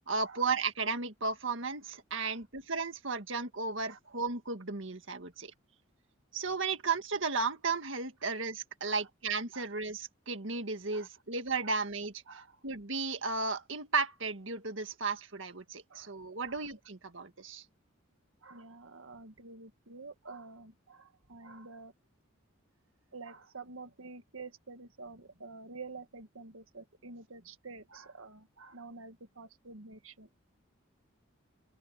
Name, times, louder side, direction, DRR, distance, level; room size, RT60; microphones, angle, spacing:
voice 1, 0.1-5.5 6.3-12.2 12.6-17.6, right 4 dB, 65° right, 1.9 m, -34 dB
voice 2, 2.1-2.4 3.9-4.0 8.8-9.0 9.5-9.7 10.9-11.1 11.6-11.8 12.3-12.6 15.9-16.1 16.4-16.6 18.4-21.9 23.1-30.4, right 3 dB, 80° right, 1.7 m, -49 dB
open air
head